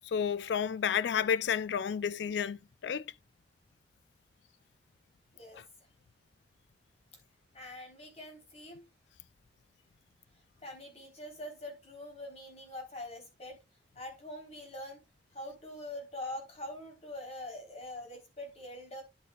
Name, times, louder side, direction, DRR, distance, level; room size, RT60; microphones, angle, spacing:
voice 1, 0.1-2.6 2.8-3.1 5.6-5.7, left 7 dB, 70° left, 0.4 m, -31 dB
voice 2, 7.5-8.8 10.6-13.6 14.0-15.0 15.3-19.0, left 1 dB, 35° left, 3.6 m, -44 dB
10.5 x 8.3 x 2.3 m
head